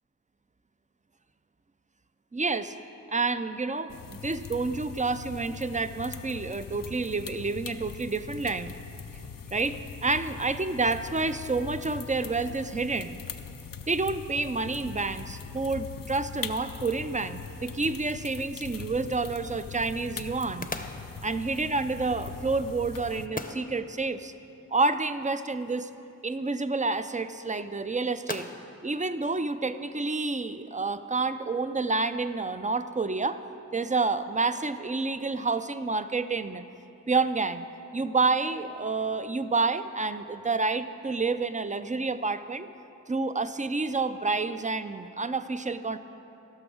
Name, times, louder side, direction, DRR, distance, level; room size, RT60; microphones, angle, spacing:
voice 1, 2.3-2.7 3.1-8.7 9.5-13.2 13.9-20.7 21.2-24.3 24.7-25.9 26.2-28.5 28.8-33.4 33.7-36.6 37.1-37.7 37.9-42.7 43.1-46.0, right 3 dB, 25° right, 12 dB, 0.4 m, -29 dB
sound 1, 3.9-23.3, left 6 dB, 80° left, 0.5 m, -41 dB
sound 2, 18.5-30.2, left 2 dB, 25° left, 0.7 m, -45 dB
14.5 x 6.1 x 6.3 m, 2.8 s
wide cardioid pair, 45°, 33 cm